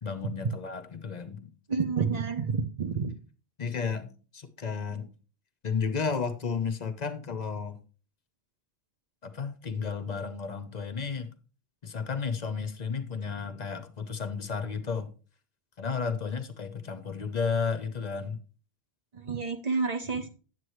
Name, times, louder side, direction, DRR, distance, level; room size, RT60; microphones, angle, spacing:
voice 1, 0.0-1.5 3.6-5.1 5.6-7.8 9.2-11.3 11.8-15.1 15.8-18.4, left 5 dB, 45° left, 0.8 m, -33 dB
voice 2, 1.7-3.1 19.1-20.3, right 5 dB, 40° right, 0.7 m, -29 dB
9.6 x 7.6 x 3.1 m
omnidirectional pair, 1.1 m